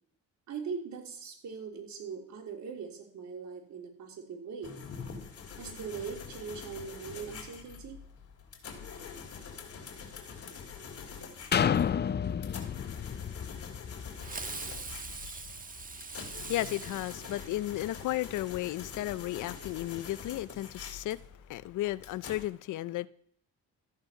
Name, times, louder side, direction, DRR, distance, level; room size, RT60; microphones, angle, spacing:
voice 1, 0.5-4.8 5.5-8.0, right 6 dB, 70° right, 3.7 m, -41 dB
sound 1, 4.6-22.4, left 6 dB, 50° left, 3.4 m, -45 dB
sound 2, 11.5-15.3 15.8-15.9, left 8 dB, 35° left, 0.6 m, -31 dB
Fireworks, 14.2-18.1, right 4 dB, 30° right, 1.4 m, -42 dB
voice 2, 16.4-21.2 21.5-23.1, left 15 dB, 80° left, 0.6 m, -34 dB
14.0 x 9.6 x 5.8 m
cardioid pair, 90°, 30 cm